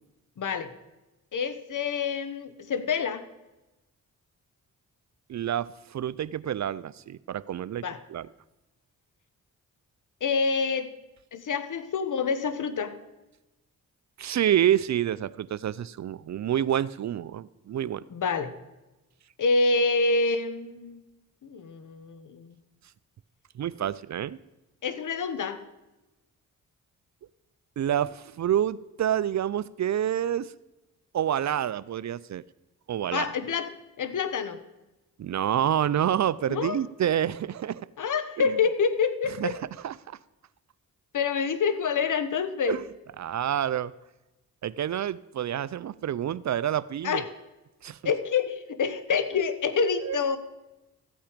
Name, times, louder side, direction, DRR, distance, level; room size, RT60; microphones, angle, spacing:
voice 1, 0.4-0.7 1.3-3.3 7.8-8.0 10.2-10.9 11.3-13.0 18.1-18.5 19.4-21.0 21.4-22.5 24.8-25.6 33.1-33.7 34.0-34.6 36.5-36.8 38.0-39.6 41.1-42.8 47.0-47.3 48.0-50.4, left 5 dB, 60° left, 12 dB, 1.2 m, -27 dB
voice 2, 5.3-7.8 8.1-8.3 14.2-18.0 23.6-24.4 27.8-30.5 31.1-32.4 32.9-33.3 35.2-37.9 38.4-38.5 39.4-40.2 42.6-42.8 43.2-43.9 44.6-47.2 47.8-48.0 50.0-50.2, right 10 dB, 50° right, 18 dB, 0.5 m, -28 dB
14.0 x 8.8 x 5.1 m, 1.0 s
cardioid pair, 55°, 36 cm